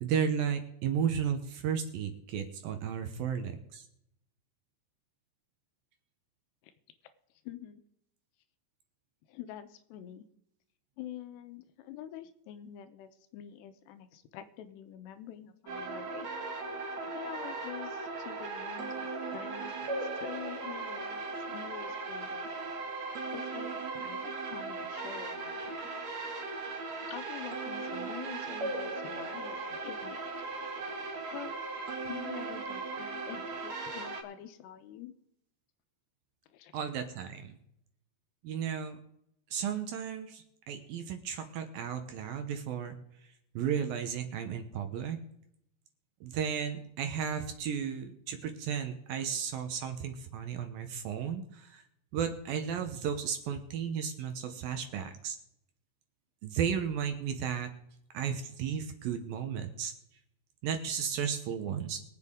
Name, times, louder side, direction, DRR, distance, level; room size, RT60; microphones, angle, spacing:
voice 1, 0.0-3.9 36.7-37.6 38.4-39.0 39.5-43.0 43.6-45.2 46.2-51.8 52.1-55.4 56.4-57.7 58.1-59.9 60.6-62.0, right 8 dB, 70° right, 6 dB, 2.5 m, -34 dB
voice 2, 7.4-7.8 9.3-10.3 11.0-16.3 17.1-22.5 23.3-25.9 27.1-30.2 31.3-31.5 32.1-35.2 36.5-36.8, left 10 dB, 90° left, 10 dB, 3.1 m, -46 dB
sound 1, 15.7-34.2, right 3 dB, 50° right, 2.7 m, -38 dB
22.5 x 8.1 x 3.7 m, 0.76 s
omnidirectional pair, 4.7 m